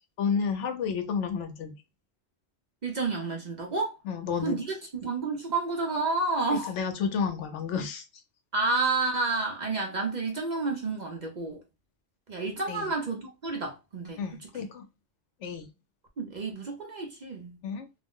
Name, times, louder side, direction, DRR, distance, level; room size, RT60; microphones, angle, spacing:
voice 1, 0.2-1.7 4.0-4.6 6.5-8.0 12.7-12.9 14.2-14.9 15.4-15.7 17.6-17.9, left 6 dB, 80° left, 0.9 m, -31 dB
voice 2, 2.8-3.9 4.4-4.7 4.9-6.7 8.5-11.6 12.3-14.2 14.5-14.7 16.2-17.6, right 3 dB, 50° right, 0.6 m, -30 dB
2.5 x 2.0 x 3.5 m
omnidirectional pair, 1.2 m